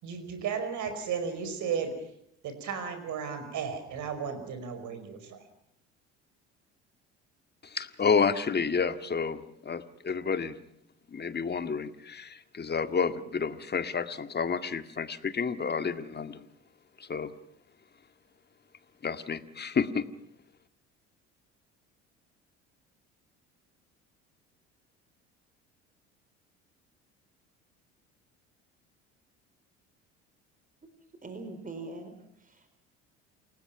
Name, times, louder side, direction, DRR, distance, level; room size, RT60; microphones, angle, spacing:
voice 1, 0.0-1.9 2.4-5.4, right 6 dB, 55° right, 9 dB, 5.2 m, -34 dB
voice 2, 7.6-10.6 11.1-16.5 17.0-17.3 19.0-20.0, left 5 dB, 30° left, 10 dB, 1.9 m, -30 dB
voice 3, 31.2-32.7, right 2 dB, 25° right, 8 dB, 4.3 m, -42 dB
29.0 x 19.5 x 5.9 m, 0.74 s
hypercardioid pair, 60°, 34 cm